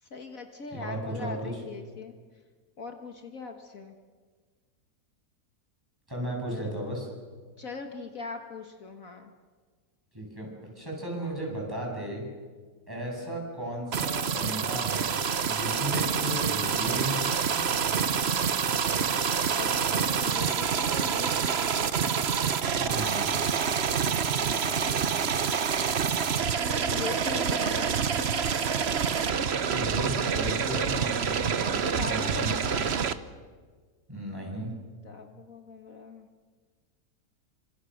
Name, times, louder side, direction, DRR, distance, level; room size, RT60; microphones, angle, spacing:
voice 1, 0.0-2.2 2.8-4.0 6.5-6.8 7.6-9.3 13.1-13.3 19.5-22.3 24.4-25.1 26.4-28.5 31.8-32.9 35.0-36.3, left 4 dB, 60° left, 5 dB, 2.0 m, -41 dB
voice 2, 0.7-1.5 6.1-7.1 10.1-12.2 12.9-17.6 22.7-23.4 29.5-32.5 34.1-34.7, right 1 dB, 15° right, -1 dB, 8.0 m, -35 dB
sound 1, 13.9-33.1, right 7 dB, 45° right, 1.1 m, -27 dB
29.5 x 26.0 x 6.6 m, 1.5 s
omnidirectional pair, 1.7 m